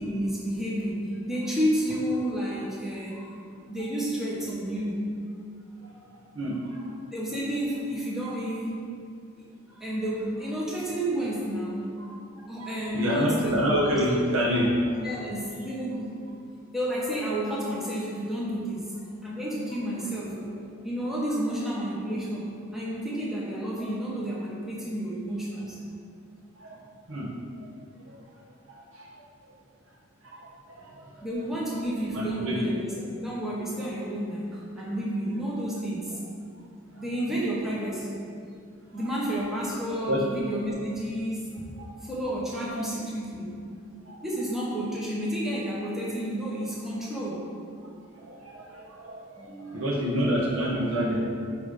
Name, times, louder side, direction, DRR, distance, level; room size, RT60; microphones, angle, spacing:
voice 1, 0.0-3.3 3.7-5.0 7.1-9.0 9.4-11.9 12.5-13.5 15.0-16.2 16.7-25.8 26.7-26.8 30.7-30.9 31.2-36.2 37.0-38.2 38.9-41.5 41.8-43.5 44.2-47.5 49.4-49.8, right 1 dB, ahead, -6 dB, 1.0 m, -31 dB
voice 2, 6.3-6.9 12.6-15.2 26.6-26.7 27.1-27.3 28.1-28.2 28.9-29.2 30.2-31.1 32.1-32.6 36.9-37.0 40.1-40.2 41.8-41.9 42.8-42.9 44.1-44.2 48.2-51.3, equal, 70° right, -2 dB, 1.2 m, -28 dB
8.6 x 3.3 x 5.1 m, 2.4 s
head